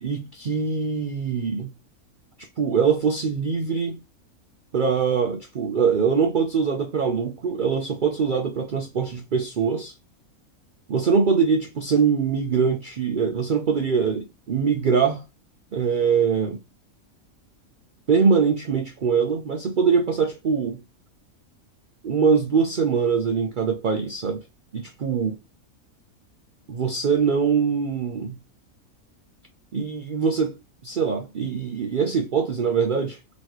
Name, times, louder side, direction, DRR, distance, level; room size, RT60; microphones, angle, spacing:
voice 1, 0.0-1.7 2.4-4.0 4.7-10.0 10.9-15.2 15.7-16.6 18.1-20.8 22.0-24.4 24.7-25.4 26.7-28.4 29.7-30.6 30.8-33.2, right 6 dB, 55° right, 0.6 m, -23 dB
4.1 x 3.0 x 3.0 m
omnidirectional pair, 1.6 m